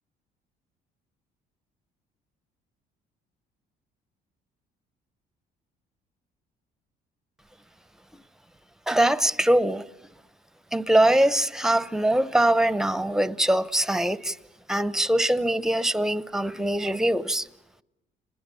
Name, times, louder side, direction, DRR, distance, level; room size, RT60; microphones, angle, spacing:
voice 1, 8.9-9.8 10.7-14.4 14.7-17.5, right 1 dB, 5° right, 0.8 m, -22 dB
30.0 x 21.5 x 6.9 m
cardioid pair, 110°, 17 cm